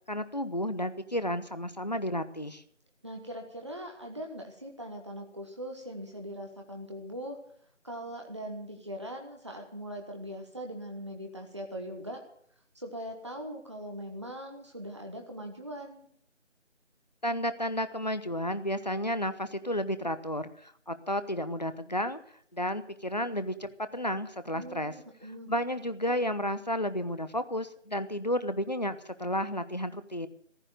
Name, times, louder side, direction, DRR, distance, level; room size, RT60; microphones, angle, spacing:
voice 1, 0.1-2.6 17.2-22.2 22.5-24.9 25.5-30.3, equal, 35° left, 13 dB, 1.0 m, -32 dB
voice 2, 3.0-7.4 7.8-12.2 12.7-16.0 24.5-25.5, equal, 25° right, 2 dB, 1.4 m, -41 dB
15.0 x 9.9 x 8.0 m, 0.63 s
figure-of-eight pair, 170°, 36 cm